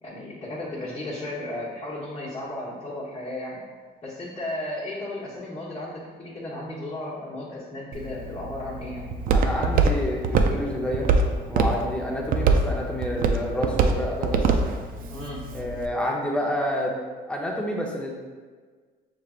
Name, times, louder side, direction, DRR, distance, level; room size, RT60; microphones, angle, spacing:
voice 1, 0.0-3.6 4.0-9.0 15.1-15.4, left 1 dB, 30° left, -9 dB, 1.1 m, -34 dB
Walk footsteps, 7.9-15.9, right 4 dB, 55° right, 0.4 m, -24 dB
voice 2, 9.3-11.1 11.5-14.5 15.5-16.9 17.3-18.1, left 1 dB, 5° left, -2 dB, 0.7 m, -28 dB
5.6 x 3.2 x 2.5 m, 1.5 s
cardioid pair, 110°, 17 cm